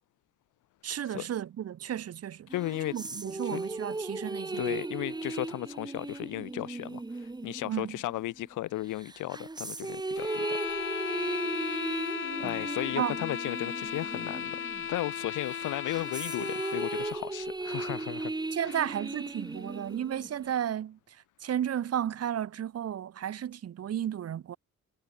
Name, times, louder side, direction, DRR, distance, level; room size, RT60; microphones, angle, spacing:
voice 1, 0.8-2.5 2.9-4.8 7.6-8.0 12.4-12.6 12.9-13.2 18.5-21.0 21.4-24.6, right 10 dB, 55° right, 1.1 m, -33 dB
voice 2, 2.5-2.9 3.5-3.6 4.6-10.6 12.4-14.6 14.9-18.3 18.6-18.9, left 16 dB, 85° left, 1.3 m, -35 dB
sound 1, 2.5-8.5 9.0-15.0 15.4-20.5, right 2 dB, 15° right, 1.2 m, -37 dB
sound 2, 10.2-17.2, left 8 dB, 40° left, 1.1 m, -36 dB
cardioid pair, 90°, 30 cm